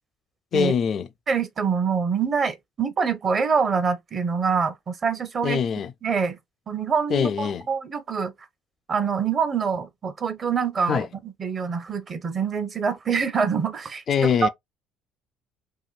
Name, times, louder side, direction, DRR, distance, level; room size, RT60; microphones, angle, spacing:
voice 1, 0.5-1.1 5.4-5.9 7.1-7.6 10.9-11.1 14.1-14.5, left 7 dB, 50° left, 0.3 m, -23 dB
voice 2, 1.3-5.6 6.0-6.4 6.7-8.3 8.9-14.0 14.4-14.5, right 6 dB, 40° right, 0.8 m, -25 dB
2.8 x 2.7 x 2.3 m
supercardioid pair, 75°, 0 cm